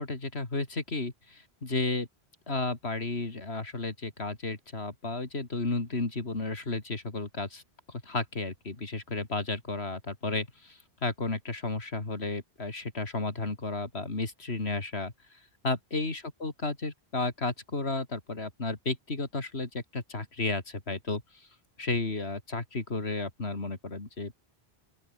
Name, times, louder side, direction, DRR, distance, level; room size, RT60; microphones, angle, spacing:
voice 1, 0.0-2.1 2.5-7.6 7.9-15.1 15.6-21.2 21.8-24.4, left 3 dB, 85° left, 3.5 m, -33 dB
open air
omnidirectional pair, 1.1 m